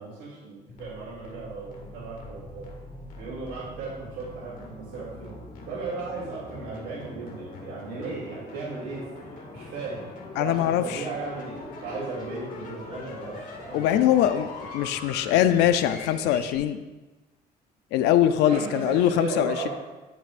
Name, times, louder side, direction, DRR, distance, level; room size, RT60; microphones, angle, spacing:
voice 1, 0.0-2.7 3.2-5.4 5.7-9.0 9.5-10.1 10.4-13.4 13.6-14.0 14.3-14.4 18.4-19.7, right 4 dB, 85° right, -9 dB, 2.9 m, -36 dB
sound 1, 0.7-16.6, left 3 dB, 55° left, 1.9 m, -42 dB
voice 2, 10.4-11.0 13.7-14.5 14.7-16.8 17.9-19.7, left 11 dB, 90° left, 11 dB, 0.5 m, -22 dB
11.5 x 6.8 x 2.5 m, 1.2 s
cardioid pair, 110°, 17 cm